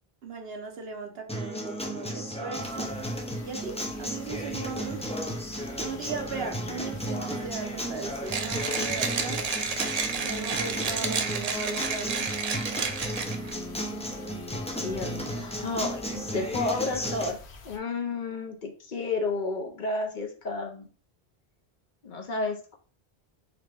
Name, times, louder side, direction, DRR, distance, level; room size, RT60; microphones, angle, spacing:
voice 1, 0.2-2.9 3.4-5.1 5.8-9.4 10.2-12.3, right 4 dB, 70° right, 3 dB, 1.1 m, -38 dB
Acoustic guitar, 1.3-17.3, equal, 10° left, 0.4 m, -34 dB
sound 1, 2.6-17.8, left 4 dB, 85° left, 1.0 m, -49 dB
Mechanisms, 8.3-13.5, right 5 dB, 50° right, 0.5 m, -31 dB
voice 2, 14.7-17.4 17.6-20.9 22.0-22.8, left 3 dB, 55° left, 2 dB, 0.8 m, -31 dB
3.9 x 3.3 x 3.3 m, 0.40 s
omnidirectional pair, 1.1 m